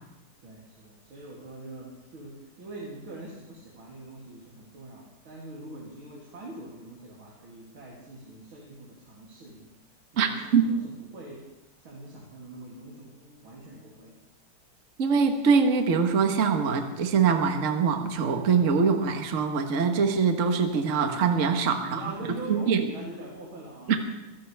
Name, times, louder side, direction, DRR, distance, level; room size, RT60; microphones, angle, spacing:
voice 1, 0.4-9.7 10.1-11.4 11.8-14.1 21.7-23.9, right 2 dB, 70° right, -5 dB, 3.7 m, -43 dB
voice 2, 10.2-10.6 15.0-22.0 22.5-22.9 23.9-24.0, right 5 dB, 40° right, 5 dB, 1.5 m, -23 dB
25.0 x 16.0 x 3.5 m, 1.0 s
omnidirectional pair, 2.3 m